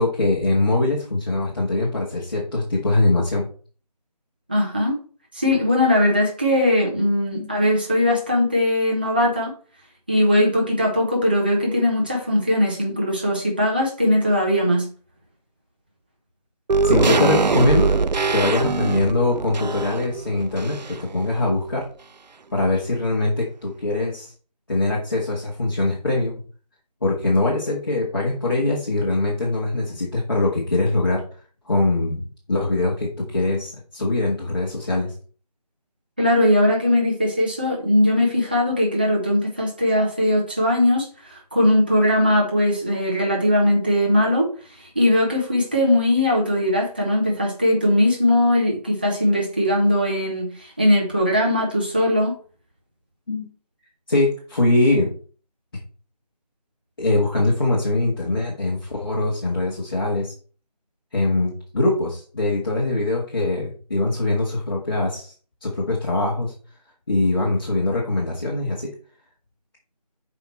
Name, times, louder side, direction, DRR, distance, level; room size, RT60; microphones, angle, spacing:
voice 1, 0.0-3.5 7.3-7.5 13.0-13.1 16.8-17.9 18.3-21.8 22.5-24.3 24.7-26.3 27.0-31.2 31.6-35.1 53.3-53.5 54.1-55.1 57.0-60.3 61.1-65.3 65.6-66.5 67.1-68.9, left 2 dB, 35° left, -4 dB, 1.5 m, -22 dB
voice 2, 4.5-5.0 5.3-9.5 10.1-14.9 36.2-44.5 44.8-52.4, left 1 dB, 15° right, -2 dB, 0.6 m, -20 dB
sound 1, 16.7-21.2 21.5-21.6, right 4 dB, 85° right, 0.5 m, -22 dB
6.2 x 4.9 x 4.3 m, 0.41 s
figure-of-eight pair, 165°, 21 cm